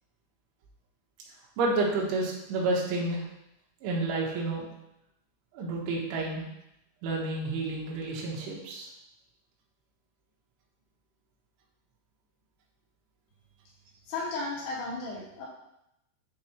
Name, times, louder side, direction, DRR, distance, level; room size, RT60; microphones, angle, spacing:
voice 1, 1.6-3.3 3.8-4.7 5.5-6.4 7.0-8.9, right 2 dB, 75° right, -3 dB, 3.5 m, -30 dB
voice 2, 14.1-15.5, left 3 dB, 80° left, -5 dB, 4.4 m, -34 dB
10.5 x 4.1 x 3.0 m, 0.84 s
omnidirectional pair, 5.9 m